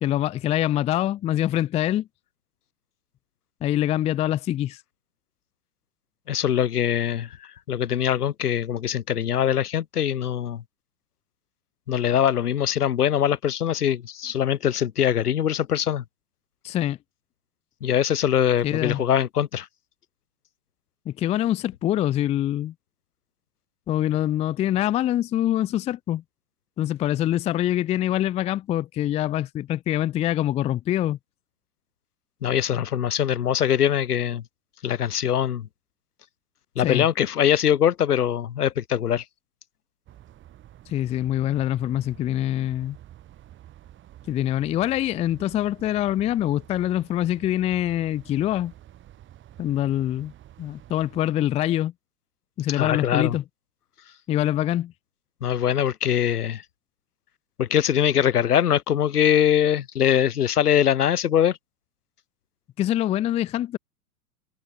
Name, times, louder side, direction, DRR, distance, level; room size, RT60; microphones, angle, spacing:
voice 1, 0.0-2.1 3.6-4.8 16.6-17.0 18.6-19.0 21.1-22.7 23.9-26.2 26.8-31.2 36.8-37.1 40.9-43.0 44.3-48.7 49.6-50.3 50.6-51.9 52.6-53.4 54.3-54.9 62.8-63.8, left 12 dB, 15° left, 0.6 m, -24 dB
voice 2, 6.3-10.6 11.9-16.0 17.8-19.7 32.4-34.4 34.8-35.7 36.8-39.2 52.7-53.4 55.4-56.6 57.6-61.6, left 9 dB, 80° left, 0.9 m, -22 dB
sound 1, 40.1-51.2, right 12 dB, 25° right, 2.7 m, -49 dB
figure-of-eight pair, 105°, 45 cm